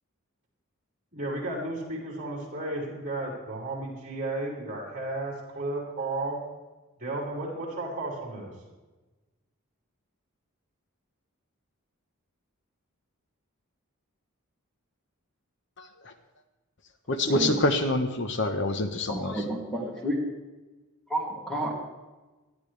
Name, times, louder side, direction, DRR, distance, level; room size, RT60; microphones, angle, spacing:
voice 1, 1.1-6.4 7.0-8.5, right 2 dB, 40° right, -5 dB, 5.6 m, -33 dB
voice 2, 15.8-16.1 17.1-19.4, left 1 dB, 55° left, 7 dB, 1.2 m, -27 dB
voice 3, 17.2-17.6 19.1-20.2 21.1-21.7, right 1 dB, 5° left, -3 dB, 2.8 m, -31 dB
19.5 x 13.5 x 3.4 m, 1.2 s
head